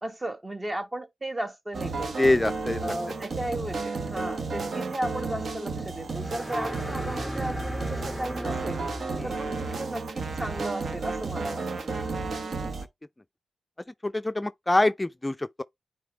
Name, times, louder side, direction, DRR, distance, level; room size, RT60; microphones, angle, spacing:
voice 1, 0.0-2.3 2.8-8.8 9.2-12.1, right 1 dB, 25° right, 1.3 m, -35 dB
sound 1, 1.7-12.9, right 3 dB, 65° right, 1.0 m, -33 dB
voice 2, 2.2-2.9 9.2-9.4 14.0-15.6, left 2 dB, 20° left, 0.4 m, -25 dB
sound 2, 6.1-9.9, equal, 10° right, 0.9 m, -36 dB
9.4 x 3.8 x 3.2 m
supercardioid pair, 40°, 0 cm